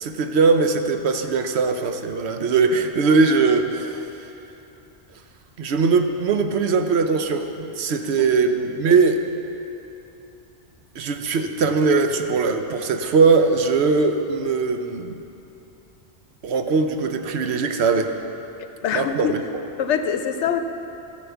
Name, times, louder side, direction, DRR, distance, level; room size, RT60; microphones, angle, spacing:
voice 1, 0.0-4.1 5.6-9.2 11.0-15.1 16.4-18.1 18.9-19.4, right 4 dB, 70° right, 6 dB, 0.9 m, -20 dB
voice 2, 18.8-19.4 19.8-20.6, left 7 dB, 85° left, 8 dB, 1.0 m, -23 dB
14.5 x 5.2 x 7.0 m, 2.9 s
omnidirectional pair, 1.2 m